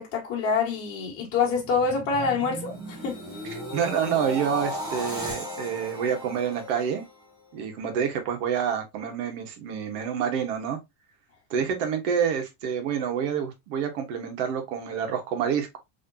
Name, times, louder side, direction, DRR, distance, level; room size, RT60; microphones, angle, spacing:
voice 1, 0.0-3.2, left 5 dB, 35° left, 1.8 m, -26 dB
sound 1, 1.3-7.6 8.0-8.3, equal, 10° right, 1.2 m, -36 dB
voice 2, 3.7-7.0 7.5-10.8 11.5-15.8, right 7 dB, 70° right, 1.3 m, -28 dB
3.8 x 3.1 x 2.8 m
cardioid pair, 160°, 39 cm